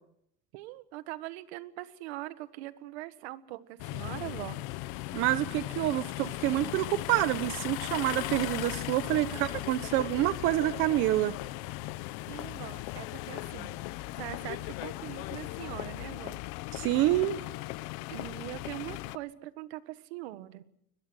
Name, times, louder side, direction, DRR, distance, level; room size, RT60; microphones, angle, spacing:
voice 1, 0.5-4.6 9.3-9.5 12.3-13.8 14.1-16.4 18.1-20.6, right 16 dB, 80° right, 13 dB, 1.6 m, -42 dB
sound 1, 3.8-19.2, left 18 dB, 45° left, 0.7 m, -38 dB
voice 2, 5.1-11.4 16.7-17.4, right 16 dB, 40° right, 14 dB, 0.7 m, -27 dB
22.0 x 21.0 x 6.3 m, 0.74 s
cardioid pair, 175°, 32 cm